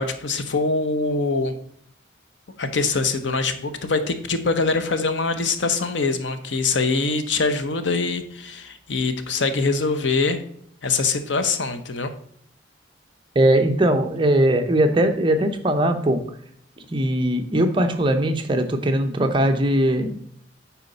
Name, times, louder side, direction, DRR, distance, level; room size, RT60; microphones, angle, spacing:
voice 1, 0.0-1.6 2.6-10.4 10.8-12.1, left 3 dB, 80° left, 9 dB, 0.8 m, -23 dB
voice 2, 13.3-16.2 16.9-20.2, right 1 dB, 25° right, 5 dB, 0.7 m, -20 dB
9.3 x 4.3 x 4.1 m, 0.66 s
head